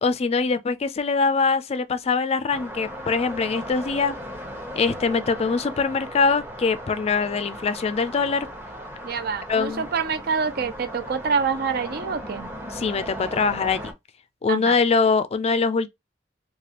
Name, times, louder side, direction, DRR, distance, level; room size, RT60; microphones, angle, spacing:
voice 1, 0.0-4.1 4.8-8.5 9.5-9.9 12.7-13.9 14.4-15.9, left 4 dB, 35° left, 0.4 m, -23 dB
sound 1, 2.5-13.9, equal, 10° right, 0.8 m, -37 dB
voice 2, 9.0-12.5 14.5-14.8, right 5 dB, 60° right, 0.5 m, -26 dB
3.2 x 2.3 x 2.9 m
head